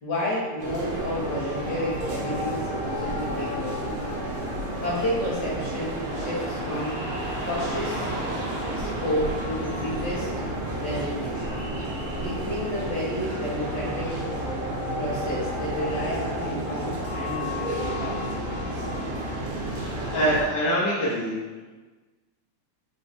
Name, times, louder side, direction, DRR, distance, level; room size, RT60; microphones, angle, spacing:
voice 1, 0.0-4.0 4.8-6.9 7.4-8.1 8.7-10.3 10.8-11.6 12.2-14.1 15.0-18.1 18.5-18.8, left 1 dB, 45° left, -8 dB, 1.5 m, -31 dB
sound 1, 0.6-7.3 8.4-13.5 13.9-20.4, left 4 dB, 85° left, 2.0 m, -44 dB
sound 2, 0.6-20.4, right 1 dB, 65° right, 1.4 m, -31 dB
Car passing by / Traffic noise roadway noise, 4.7-13.8, right 1 dB, 45° right, 0.7 m, -40 dB
voice 2, 19.8-21.4, equal, 70° left, -10 dB, 1.1 m, -24 dB
4.7 x 2.2 x 4.2 m, 1.3 s
omnidirectional pair, 3.4 m